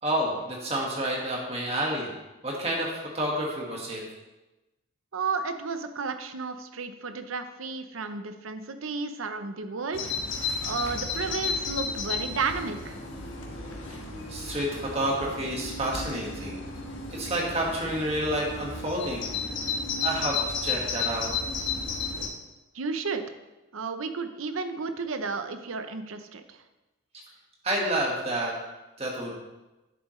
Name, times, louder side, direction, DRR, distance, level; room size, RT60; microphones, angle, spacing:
voice 1, 0.0-2.1 2.4-4.0 13.9-14.0 14.3-16.6 17.1-19.2 19.6-19.7 20.0-21.3 27.6-28.6 29.0-29.4, right 1 dB, 30° right, -2 dB, 1.7 m, -29 dB
voice 2, 5.1-10.1 10.6-13.0 22.7-23.2 23.7-26.6, right 4 dB, 85° right, 9 dB, 0.7 m, -32 dB
Bird vocalization bird call bird song, 9.9-22.3, left 4 dB, 70° left, 1.3 m, -33 dB
10.0 x 7.2 x 3.2 m, 1.1 s
head